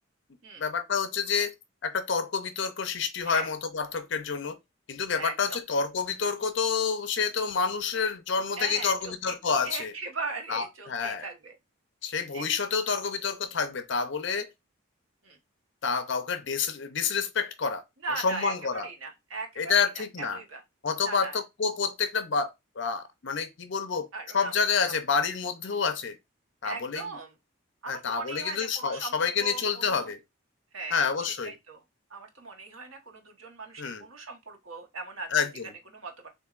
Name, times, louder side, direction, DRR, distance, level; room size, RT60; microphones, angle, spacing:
voice 1, 0.6-1.5 1.8-4.6 4.9-9.9 10.5-11.3 12.0-14.5 15.8-17.8 18.2-18.9 19.6-20.4 20.8-22.5 22.8-24.1 24.3-26.2 26.6-27.0 27.9-30.2 30.9-31.5 33.8-34.0 35.3-35.7, left 5 dB, 60° left, 0.6 m, -28 dB
voice 2, 5.1-5.6 8.5-9.4 9.6-11.6 12.3-12.4 15.2-15.4 18.0-20.6 21.0-21.4 24.1-24.5 24.8-24.9 26.6-27.4 27.8-30.1 30.7-31.8 32.1-35.3 35.9-36.1, right 4 dB, 75° right, 1.2 m, -39 dB
6.6 x 2.6 x 2.5 m
head